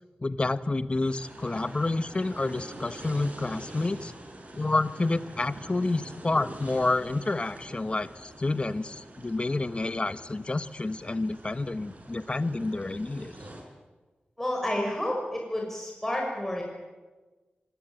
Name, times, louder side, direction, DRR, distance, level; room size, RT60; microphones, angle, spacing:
voice 1, 0.2-4.1 4.6-13.3, left 2 dB, 30° left, 13 dB, 1.1 m, -29 dB
sound 1, 1.0-13.6, right 1 dB, 45° right, 5.8 m, -46 dB
voice 2, 14.4-16.6, left 1 dB, 10° left, -1 dB, 6.0 m, -30 dB
25.5 x 20.0 x 9.1 m, 1.3 s
wide cardioid pair, 105°, 3 cm